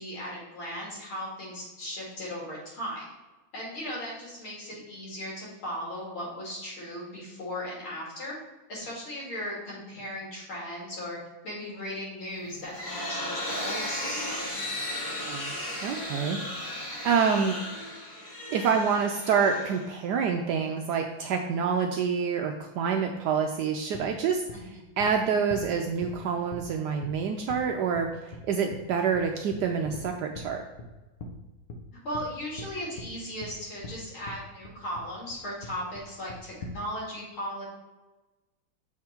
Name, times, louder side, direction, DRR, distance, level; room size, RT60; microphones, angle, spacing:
voice 1, 0.0-3.1 3.5-8.4 8.7-11.2 11.4-14.4 24.5-24.7 32.0-37.7, equal, 85° left, -5 dB, 3.3 m, -37 dB
sound 1, 12.4-20.2, left 1 dB, 25° left, 1.4 m, -35 dB
voice 2, 15.1-15.5 15.8-16.8 17.0-17.5 18.5-24.4 25.0-30.6, right 6 dB, 75° right, 3 dB, 0.9 m, -27 dB
sound 2, 23.9-24.0 24.5-24.6 25.0-25.1 25.5-25.6 26.0-26.1 26.5-26.6 27.0-27.1 27.5-27.6 27.9-28.0 28.3-28.4 28.7-28.8 29.1-29.2 29.5-30.0 30.3-30.5 30.8-30.9 31.2-31.3 31.7-31.8 32.1-32.3 32.6-32.7 33.0-33.1 33.4-33.5 33.8-33.9 34.3-34.4 34.6-35.0 35.3-35.4 35.6-36.0 36.3-36.8, left 2 dB, 55° left, 1.2 m, -40 dB
6.9 x 3.6 x 4.4 m, 1.1 s
omnidirectional pair, 2.2 m